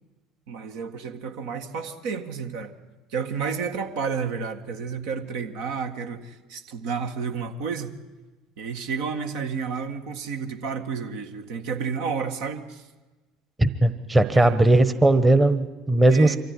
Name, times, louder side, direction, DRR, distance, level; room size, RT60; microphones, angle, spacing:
voice 1, 0.5-2.7 3.1-8.0 8.6-12.9 14.3-14.6 16.0-16.4, right 5 dB, 65° right, 5 dB, 1.7 m, -31 dB
voice 2, 13.6-16.4, right 2 dB, 15° right, 11 dB, 1.2 m, -18 dB
24.0 x 14.5 x 9.8 m, 1.2 s
hypercardioid pair, 70°, 0 cm